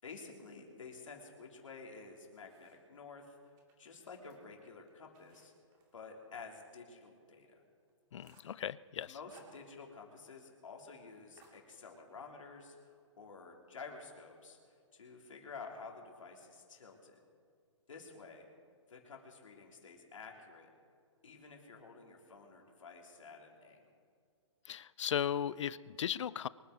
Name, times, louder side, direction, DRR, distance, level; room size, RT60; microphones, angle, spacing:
voice 1, 0.0-3.4 3.8-5.5 5.9-7.6 9.0-12.9 13.2-14.6 14.9-17.2 17.9-18.5 18.9-20.7 21.2-23.8, left 4 dB, 85° left, 1 dB, 3.7 m, -51 dB
sound 1, 1.9-3.0 3.5-6.7 7.0-7.1 7.5-7.6 7.9-8.6 9.0-10.1 10.4-10.5 10.8-11.0 11.4-12.2, right 4 dB, 25° right, 2.5 m, -67 dB
voice 2, 8.1-9.1 24.7-26.5, left 9 dB, 70° left, 20 dB, 0.5 m, -36 dB
24.0 x 9.6 x 5.2 m, 2.3 s
hypercardioid pair, 155°, 16 cm